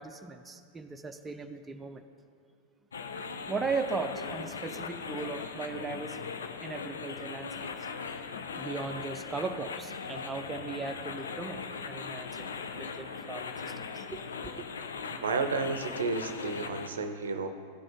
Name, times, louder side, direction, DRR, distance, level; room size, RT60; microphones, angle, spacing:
voice 1, 0.0-2.0 3.5-6.3 6.6-7.7 8.5-12.5 12.8-14.5, right 4 dB, 15° right, 7 dB, 0.5 m, -37 dB
sound 1, 2.9-16.9, left 5 dB, 70° left, 0.5 m, -39 dB
voice 2, 15.1-17.5, right 4 dB, 70° right, 9 dB, 0.6 m, -32 dB
14.5 x 5.0 x 3.6 m, 2.2 s
figure-of-eight pair, 90°, 0 cm